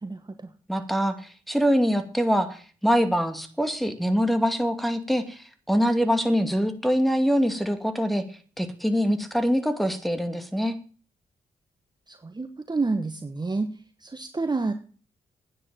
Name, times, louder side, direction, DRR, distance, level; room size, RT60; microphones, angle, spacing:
voice 1, 0.0-0.5 12.1-13.7 14.0-14.7, right 3 dB, 25° right, 8 dB, 1.3 m, -29 dB
voice 2, 0.7-1.2 1.5-8.2 8.6-10.8, equal, ahead, 8 dB, 2.5 m, -24 dB
10.0 x 9.8 x 7.4 m, 0.40 s
hypercardioid pair, 40°, 17 cm